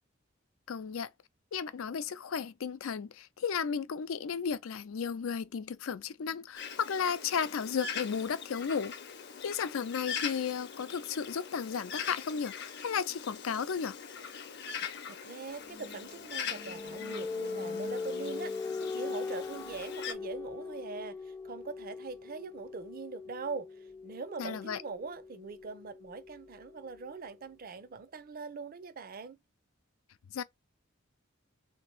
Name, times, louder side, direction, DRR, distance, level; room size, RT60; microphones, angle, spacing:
voice 1, 0.7-1.1 1.5-8.9 9.4-14.0 24.4-24.8 30.3-30.4, left 6 dB, 90° left, 0.4 m, -34 dB
Bird, 6.6-20.1, left 7 dB, 55° left, 0.7 m, -42 dB
voice 2, 14.7-29.4, right 4 dB, 45° right, 0.5 m, -43 dB
sound 1, 15.7-27.2, left 4 dB, 15° left, 0.3 m, -41 dB
3.3 x 2.9 x 4.4 m
head